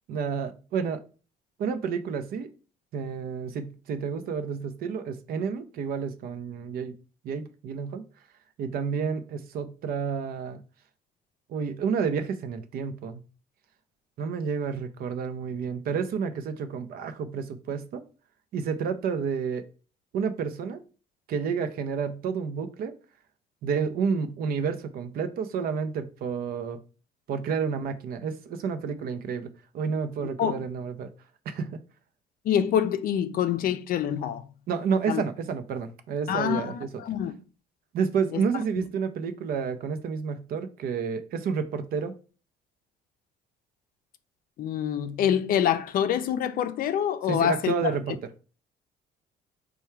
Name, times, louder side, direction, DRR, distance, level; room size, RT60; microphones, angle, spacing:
voice 1, 0.1-1.0 1.6-2.5 2.9-6.9 7.2-8.0 8.6-10.6 11.5-13.2 14.2-18.0 18.5-19.7 20.1-20.8 21.3-22.9 23.6-26.8 27.3-31.1 31.5-31.8 34.7-36.9 37.9-42.1 47.3-48.2, right 6 dB, 60° right, 0.6 m, -30 dB
voice 2, 32.4-34.4 35.1-35.2 36.3-37.3 38.3-38.4 38.8-38.9 44.6-47.7, left 9 dB, 60° left, 0.5 m, -26 dB
4.5 x 2.3 x 4.4 m
cardioid pair, 110°, 17 cm